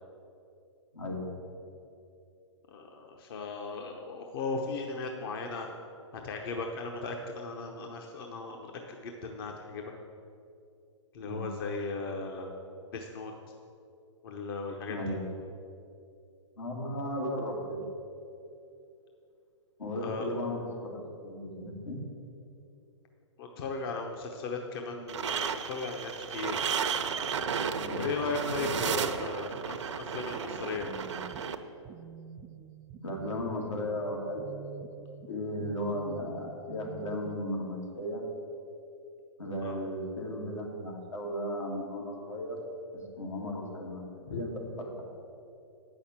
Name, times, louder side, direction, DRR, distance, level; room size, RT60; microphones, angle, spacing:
voice 1, 0.9-1.3 11.2-11.4 14.9-15.3 16.6-17.8 19.8-22.0 27.8-28.0 33.0-34.5 35.3-38.2 39.4-42.7 43.2-44.0 44.3-45.0, left 1 dB, 85° left, -2 dB, 2.5 m, -35 dB
voice 2, 2.7-5.7 6.1-9.9 11.1-12.5 12.9-13.3 14.2-15.1 20.0-20.3 23.4-26.6 27.3-30.9 39.6-39.8 44.3-44.4, left 4 dB, 50° left, 2 dB, 0.9 m, -37 dB
sound 1, 25.1-31.5, right 7 dB, 70° right, 0.7 m, -33 dB
sound 2, 30.5-37.3, right 8 dB, 20° right, 0.3 m, -48 dB
8.5 x 6.4 x 7.4 m, 2.6 s
hypercardioid pair, 125°, 16 cm